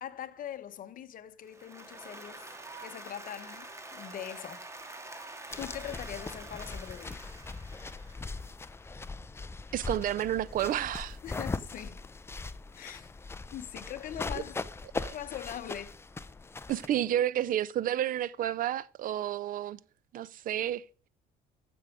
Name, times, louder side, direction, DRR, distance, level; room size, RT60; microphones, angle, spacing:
voice 1, 0.0-2.5 2.8-4.7 5.6-7.3 11.2-12.0 12.7-13.1 13.5-14.6 15.1-16.0, left 10 dB, 55° left, 1.0 m, -42 dB
Applause, 1.4-8.6, right 2 dB, 15° right, 1.7 m, -46 dB
sound 1, 5.5-16.9, left 3 dB, 15° left, 0.5 m, -40 dB
voice 2, 9.7-11.2 15.0-15.1 16.7-19.8 20.1-20.8, right 12 dB, 55° right, 0.5 m, -30 dB
15.0 x 6.2 x 5.0 m
cardioid pair, 110°, 17 cm